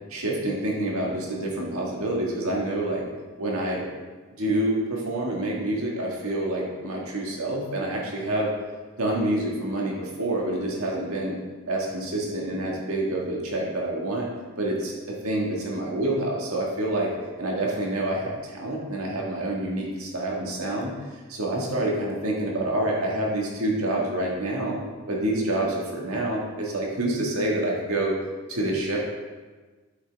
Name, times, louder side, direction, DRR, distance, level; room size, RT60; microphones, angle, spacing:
voice 1, 0.1-3.0 3.4-3.8 4.4-8.5 9.0-11.4 11.7-14.3 14.6-17.1 17.4-20.9 21.3-24.8 25.1-28.2 28.5-29.0, right 1 dB, 90° right, -2 dB, 1.7 m, -27 dB
8.8 x 5.7 x 3.5 m, 1.3 s
head